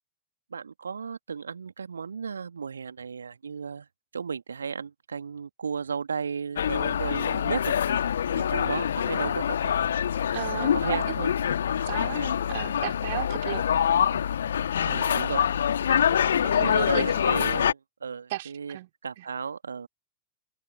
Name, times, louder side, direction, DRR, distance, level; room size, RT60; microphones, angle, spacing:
voice 1, 0.5-3.9 4.1-7.8 8.4-9.7 10.5-11.3 12.1-12.4 14.9-15.5 16.4-18.8 19.0-19.9, right 6 dB, 75° right, 1.9 m, -34 dB
sound 1, 6.6-17.7, left 8 dB, 65° left, 1.8 m, -25 dB
voice 2, 10.3-11.0 11.9-12.2 12.5-13.7 15.9-16.2 16.5-17.2 18.3-18.9 19.2-19.3, right 16 dB, 55° right, 2.9 m, -35 dB
open air
figure-of-eight pair, 90°, 0 cm